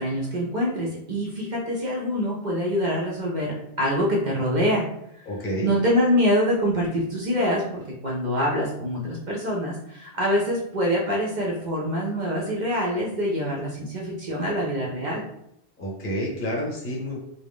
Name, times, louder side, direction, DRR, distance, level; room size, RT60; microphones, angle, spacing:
voice 1, 0.0-4.9 5.6-15.2, equal, 55° right, -3 dB, 0.6 m, -25 dB
voice 2, 5.3-5.7 15.8-17.2, equal, 55° left, -3 dB, 0.9 m, -29 dB
2.4 x 2.1 x 3.4 m, 0.77 s
omnidirectional pair, 1.1 m